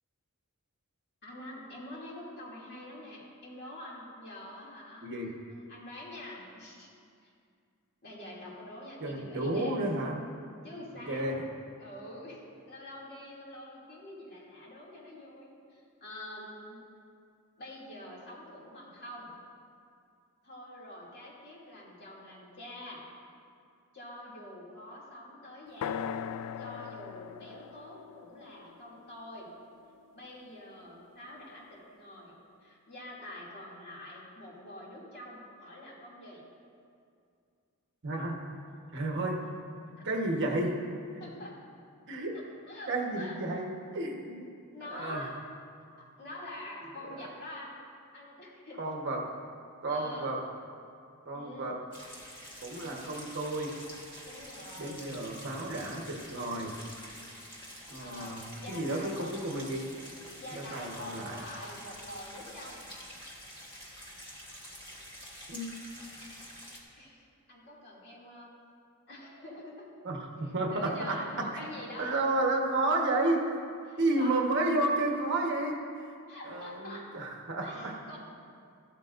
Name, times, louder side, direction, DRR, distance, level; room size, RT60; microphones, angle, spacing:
voice 1, 1.2-5.1 5.5-6.9 7.2-7.3 8.0-9.9 10.6-11.3 11.8-16.8 17.6-19.4 20.4-23.0 23.9-26.1 26.6-29.5 30.1-32.4 32.6-36.4 39.2-39.5 39.9-40.0 41.2-41.6 42.7-43.6 44.7-45.4 46.0-47.8 48.1-48.8 49.9-50.3 51.3-51.7 52.7-53.1 54.3-55.1 58.0-59.5 59.7-59.8 60.4-62.9 67.0-68.5 69.1-69.9 70.4-72.2 73.9-74.4 76.3-77.1 77.6-78.2, left 1 dB, 50° left, -5 dB, 2.6 m, -46 dB
voice 2, 5.0-5.3 9.0-10.2 11.1-11.4 38.0-38.3 38.9-39.4 40.0-40.8 42.1-42.4 42.9-44.5 44.8-45.3 48.8-49.3 49.8-50.4 51.2-51.8 52.6-53.7 54.8-56.7 57.9-59.9 60.5-61.4 65.5-65.7 70.0-70.2 70.5-71.5 72.0-73.4 74.0-76.1 76.4-77.9, right 2 dB, 55° right, 0 dB, 1.3 m, -31 dB
sound 1, 25.8-29.7, left 8 dB, 85° left, 0.3 m, -40 dB
sound 2, 51.9-66.8, equal, 20° left, 1.8 m, -47 dB
14.5 x 12.5 x 2.6 m, 2.4 s
head